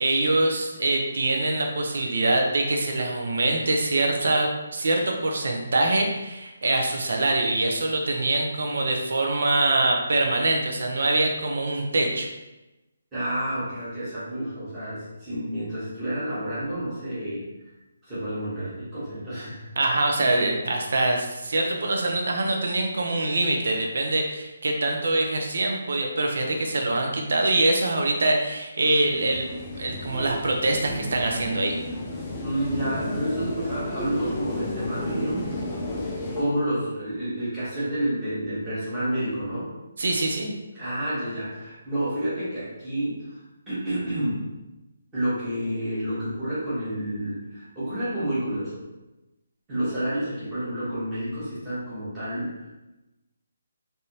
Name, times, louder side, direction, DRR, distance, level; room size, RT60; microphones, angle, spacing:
voice 1, 0.0-12.3 19.8-31.8 40.0-40.5, right 2 dB, 55° right, 2 dB, 0.6 m, -24 dB
voice 2, 13.1-17.7 18.0-19.7 32.4-35.5 36.3-39.7 40.7-43.4 43.7-44.5 45.1-48.8 49.7-52.9, right 1 dB, 10° right, -13 dB, 1.1 m, -29 dB
sound 1, 29.1-36.4, left 1 dB, 10° left, 0.3 m, -32 dB
3.4 x 2.7 x 2.8 m, 1.0 s
hypercardioid pair, 175°, 0 cm